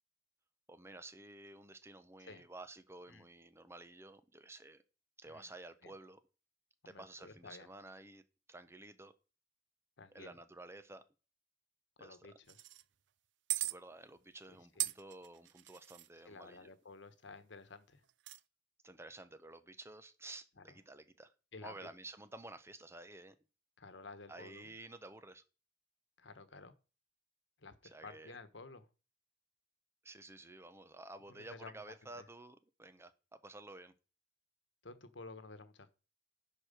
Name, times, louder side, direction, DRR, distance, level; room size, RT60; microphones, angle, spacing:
voice 1, 0.7-4.8 5.2-6.2 6.8-8.2 8.5-9.1 10.1-11.0 12.0-12.2 13.6-16.7 18.8-21.3 21.6-23.4 24.3-25.4 27.9-28.4 30.0-33.9, right 2 dB, 15° right, 0.9 m, -52 dB
voice 2, 6.8-7.7 10.0-10.3 12.0-12.6 14.7-14.9 16.2-18.0 20.6-20.7 21.5-21.9 23.8-24.7 26.2-26.7 27.6-27.7 28.0-28.9 31.3-32.3 34.8-35.9, left 3 dB, 90° left, 1.2 m, -53 dB
sound 1, 12.5-12.8 13.5-13.7 14.8-16.1 18.1-18.4, right 17 dB, 80° right, 0.5 m, -38 dB
10.5 x 4.7 x 6.6 m
head